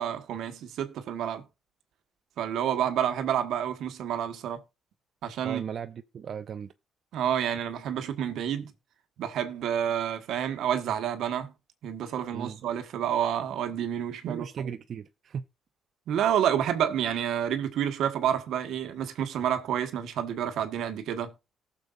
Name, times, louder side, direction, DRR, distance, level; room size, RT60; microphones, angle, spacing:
voice 1, 0.0-1.4 2.4-4.6 5.2-5.6 7.1-8.7 9.2-11.5 11.8-14.5 16.1-21.3, right 9 dB, 80° right, 1.3 m, -29 dB
voice 2, 5.4-6.7 12.3-12.6 14.3-15.4, right 7 dB, 55° right, 0.5 m, -37 dB
18.5 x 6.8 x 2.5 m
cardioid pair, 90°, 0 cm